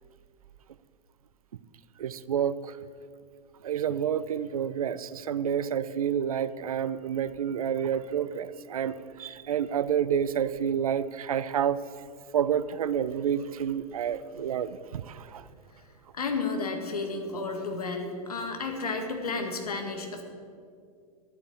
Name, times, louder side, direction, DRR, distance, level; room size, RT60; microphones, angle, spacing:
voice 1, 2.0-2.8 3.6-11.8 12.3-15.5, right 8 dB, 65° right, 16 dB, 0.5 m, -29 dB
voice 2, 16.1-20.2, left 3 dB, 70° left, 4 dB, 1.9 m, -32 dB
11.5 x 8.5 x 7.7 m, 2.3 s
figure-of-eight pair, 95°, 20 cm